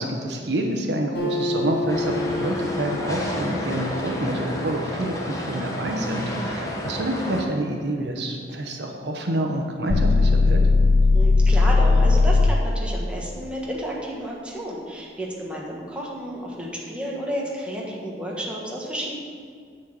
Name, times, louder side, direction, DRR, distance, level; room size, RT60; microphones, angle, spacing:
voice 1, 0.0-10.6, right 1 dB, 70° right, 2 dB, 1.1 m, -27 dB
Acoustic guitar, 1.1-4.7, left 2 dB, 60° left, 2.2 m, -30 dB
sound 1, 1.9-7.4, equal, 20° left, 1.1 m, -30 dB
sound 2, 9.9-12.7, left 3 dB, 40° left, 0.4 m, -17 dB
voice 2, 11.1-19.1, equal, 5° right, -4 dB, 1.4 m, -31 dB
9.6 x 4.4 x 7.6 m, 2.1 s
head